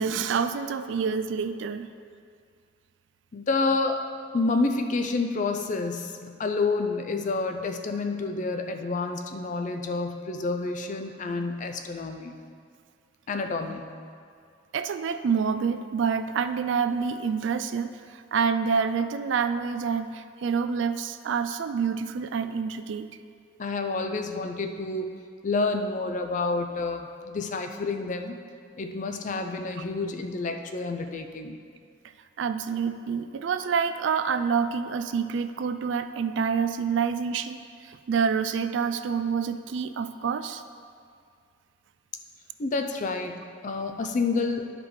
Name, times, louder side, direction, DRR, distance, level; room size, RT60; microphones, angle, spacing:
voice 1, 0.0-1.9 14.7-23.1 32.4-40.6, right 6 dB, 65° right, 10 dB, 0.3 m, -27 dB
voice 2, 3.3-4.0 4.3-12.3 13.3-13.9 23.6-25.1 25.4-28.4 28.8-31.6 42.6-44.7, left 3 dB, 40° left, 6 dB, 0.4 m, -29 dB
11.5 x 5.0 x 3.3 m, 2.2 s
head